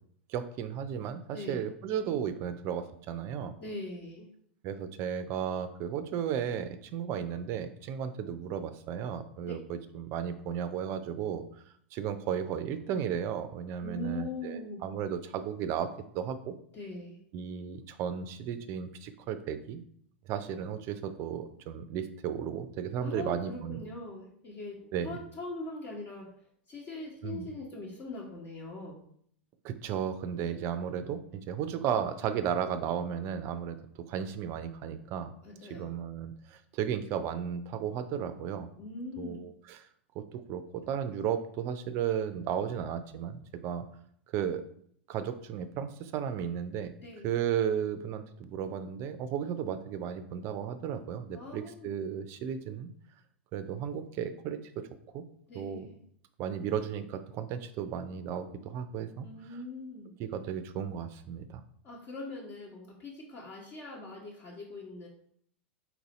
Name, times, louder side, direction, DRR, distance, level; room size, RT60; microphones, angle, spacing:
voice 1, 0.3-3.6 4.6-11.4 11.9-16.5 17.3-19.8 20.3-23.8 24.9-25.2 27.2-27.5 29.6-33.8 34.1-35.3 35.8-38.7 39.2-39.8 40.2-43.9 44.3-44.6 45.1-46.9 47.2-52.9 53.5-54.9 55.1-55.2 55.5-55.9 56.4-59.3 60.2-61.6, right 8 dB, 40° right, 11 dB, 0.5 m, -34 dB
voice 2, 3.6-4.3 13.8-14.9 16.7-17.2 23.0-26.3 26.7-29.0 35.4-35.9 38.8-39.4 47.0-47.3 51.3-51.9 55.5-56.0 59.2-60.1 61.8-65.1, left 2 dB, 40° left, -5 dB, 1.1 m, -41 dB
4.4 x 2.7 x 4.0 m, 0.64 s
figure-of-eight pair, 95°, 6 cm